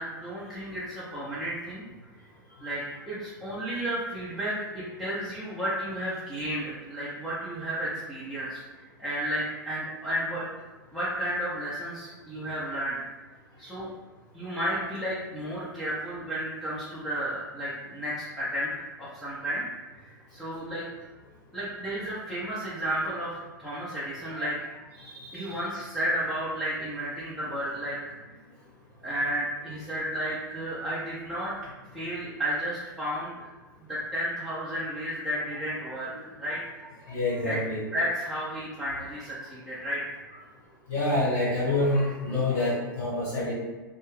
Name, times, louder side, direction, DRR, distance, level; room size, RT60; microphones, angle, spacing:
voice 1, 0.0-1.8 2.6-10.5 10.9-13.0 13.6-13.9 14.3-19.6 20.0-20.9 21.5-24.6 25.3-28.2 29.0-31.6 31.9-33.5 33.8-36.6 37.4-37.6 37.9-40.0, equal, ahead, -11 dB, 0.7 m, -32 dB
voice 2, 25.2-25.6 37.1-37.8 40.9-43.5, left 2 dB, 55° left, -8 dB, 1.1 m, -27 dB
2.3 x 2.3 x 3.2 m, 1.3 s
figure-of-eight pair, 100°, 11 cm